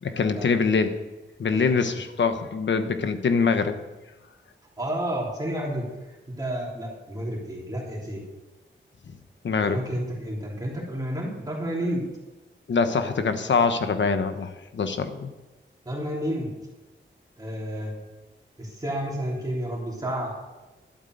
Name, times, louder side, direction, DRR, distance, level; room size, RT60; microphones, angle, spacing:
voice 1, 0.0-1.0 1.4-3.8 9.4-9.8 12.7-15.3, left 5 dB, 70° left, 9 dB, 1.1 m, -24 dB
voice 2, 4.8-8.2 9.6-12.0 15.9-16.5 17.4-17.9 18.6-20.3, equal, 20° right, -4 dB, 3.5 m, -31 dB
12.0 x 8.2 x 7.9 m, 1.1 s
wide cardioid pair, 170°, 20 cm